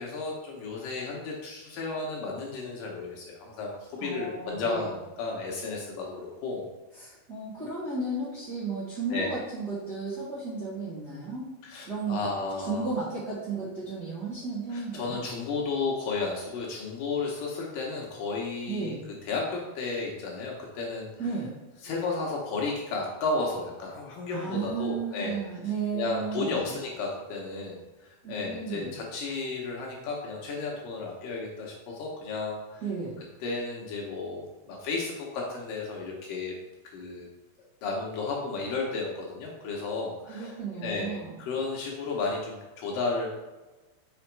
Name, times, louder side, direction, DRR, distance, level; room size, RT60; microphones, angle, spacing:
voice 1, 0.0-6.7 9.1-9.4 11.6-12.9 14.7-18.9 19.3-21.1 21.8-25.4 25.9-32.8 33.4-36.6 36.9-37.3 37.8-43.3, left 3 dB, 75° left, -2 dB, 2.1 m, -33 dB
voice 2, 4.0-4.9 6.9-12.2 12.6-15.2 18.7-19.0 21.2-21.5 24.3-26.7 28.2-28.9 32.8-33.2 40.3-41.4, right 4 dB, 40° right, -11 dB, 1.5 m, -34 dB
5.9 x 4.8 x 4.6 m, 1.2 s
omnidirectional pair, 4.9 m